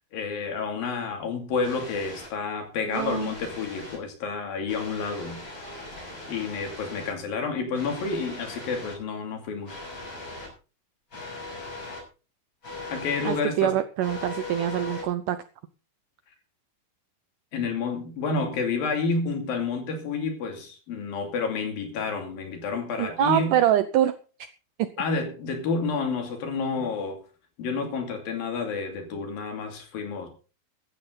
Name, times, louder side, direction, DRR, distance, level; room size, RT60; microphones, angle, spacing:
voice 1, 0.1-5.4 6.3-9.8 12.9-13.7 17.5-23.6 25.0-27.2 27.6-30.3, left 4 dB, 70° left, 4 dB, 4.6 m, -29 dB
sound 1, 1.6-2.3 2.9-4.0 4.7-7.1 7.7-8.9 9.7-10.5 11.1-12.0 12.6-13.4 14.0-15.0, left 2 dB, 25° left, 7.2 m, -39 dB
voice 2, 2.9-3.3 13.2-15.4 23.0-24.2 24.8-24.9, right 12 dB, 75° right, 12 dB, 2.0 m, -24 dB
16.0 x 13.0 x 4.0 m, 0.35 s
omnidirectional pair, 4.3 m